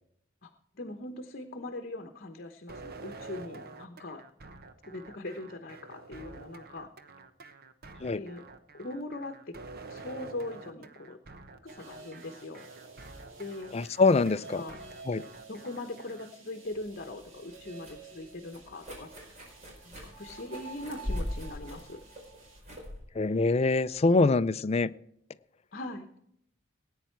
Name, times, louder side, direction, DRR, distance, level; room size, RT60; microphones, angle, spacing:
voice 1, 0.7-4.2 4.9-6.9 8.1-8.4 8.7-9.6 9.9-11.2 11.6-12.7 13.4-13.7 14.3-14.8 15.5-19.1 19.8-22.0 25.7-26.1, left 2 dB, 50° left, 1.0 m, -41 dB
sound 1, 2.7-16.3, right 3 dB, 50° right, 1.0 m, -48 dB
sound 2, 11.7-22.6, right 3 dB, 80° right, 2.9 m, -51 dB
voice 2, 13.7-14.6 15.1-15.2 23.2-24.9, left 3 dB, 30° left, 0.4 m, -24 dB
sound 3, 16.7-24.5, left 1 dB, 35° right, 4.5 m, -42 dB
18.0 x 9.3 x 4.5 m
head